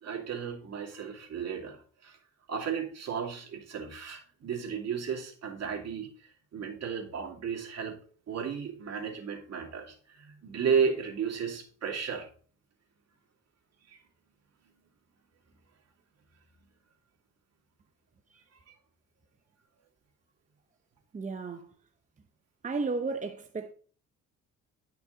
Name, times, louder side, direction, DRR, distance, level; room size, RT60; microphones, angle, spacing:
voice 1, 0.0-2.2 2.5-8.0 8.3-12.3 13.9-14.0, right 6 dB, 60° right, 2.5 m, -34 dB
voice 2, 21.1-21.7 22.6-23.7, right 4 dB, 25° right, 0.8 m, -33 dB
11.0 x 5.9 x 3.9 m
cardioid pair, 90°, 30 cm